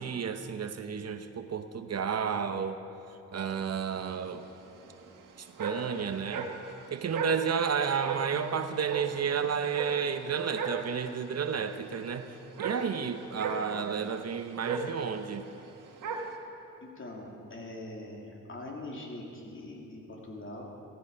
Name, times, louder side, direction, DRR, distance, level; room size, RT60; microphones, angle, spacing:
voice 1, 0.0-2.8 3.3-4.4 5.4-6.5 6.9-15.5, right 6 dB, 55° right, 9 dB, 0.8 m, -31 dB
sound 1, 3.5-16.4, right 5 dB, 85° right, 1.4 m, -39 dB
voice 2, 16.8-20.6, left 1 dB, 40° left, -1 dB, 3.0 m, -42 dB
15.5 x 14.5 x 5.4 m, 2.8 s
cardioid pair, 75°, 31 cm